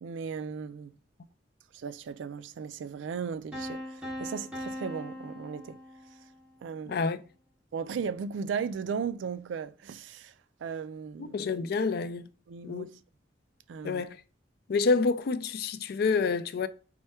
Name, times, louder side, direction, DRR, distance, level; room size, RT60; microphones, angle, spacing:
voice 1, 0.0-0.9 1.7-5.8 6.6-7.0 7.7-10.3 10.6-11.3 12.5-12.9 13.7-14.0, right 6 dB, 80° right, 0.3 m, -36 dB
sound 1, 3.5-6.4, equal, 5° right, 0.7 m, -40 dB
voice 2, 6.9-7.2 11.2-12.3 12.6-12.9 13.8-14.2 14.7-16.7, left 4 dB, 55° left, 0.3 m, -28 dB
4.5 x 2.2 x 4.2 m
head